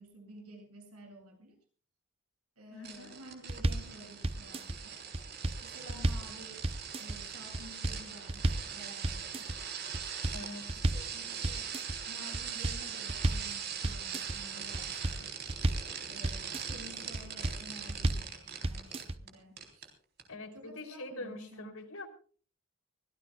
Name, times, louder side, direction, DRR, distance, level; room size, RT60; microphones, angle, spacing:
voice 1, 0.0-1.5 2.6-5.1 5.6-6.6 7.0-9.6 10.8-11.7 12.1-15.4 16.1-19.9 20.5-21.8, right 1 dB, 85° right, 3 dB, 7.8 m, -52 dB
voice 2, 2.7-3.2 10.3-10.8 20.3-22.1, left 2 dB, 70° left, 6 dB, 3.3 m, -44 dB
sound 1, 2.8-19.3 19.6-19.9 20.2-20.3, right 7 dB, 45° right, 3.7 m, -41 dB
sound 2, 3.5-3.9 4.2-4.8 5.1-6.3 6.6-7.2 7.5-8.0 8.3-8.7 9.0-9.6 9.9-11.1 11.4-12.0 12.3-13.5 13.8-14.4 14.7-15.9 16.2-16.8 17.1-17.6 17.9-18.3 18.6-19.2, right 1 dB, 25° right, 0.7 m, -32 dB
24.5 x 17.0 x 2.3 m, 0.43 s
head